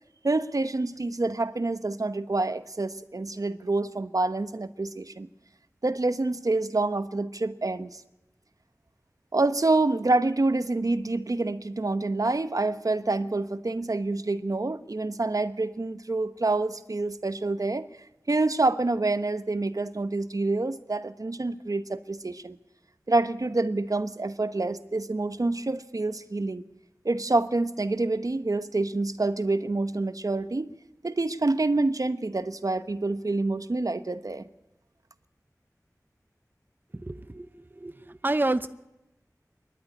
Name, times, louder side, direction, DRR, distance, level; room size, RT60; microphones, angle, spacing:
voice 1, 0.2-5.3 5.8-8.0 9.3-17.9 18.3-22.6 23.1-26.6 27.0-30.7 31.0-34.4, right 2 dB, 60° right, 12 dB, 0.9 m, -27 dB
voice 2, 37.0-37.5 37.8-37.9 38.2-38.7, right 2 dB, 30° right, 12 dB, 0.7 m, -27 dB
25.5 x 11.5 x 9.9 m, 0.95 s
wide cardioid pair, 45°, 7 cm